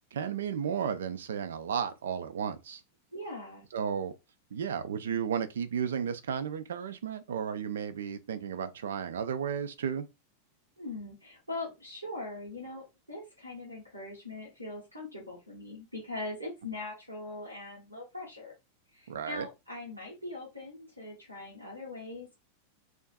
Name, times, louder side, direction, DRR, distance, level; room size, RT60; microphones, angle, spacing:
voice 1, 0.1-2.8 3.7-4.1 4.5-10.1 19.1-19.5, right 7 dB, 65° right, 0.3 m, -33 dB
voice 2, 3.1-3.6 10.8-18.5 18.9-22.4, left 2 dB, 90° right, 0.8 m, -41 dB
2.5 x 2.3 x 2.2 m
figure-of-eight pair, 90°, 0 cm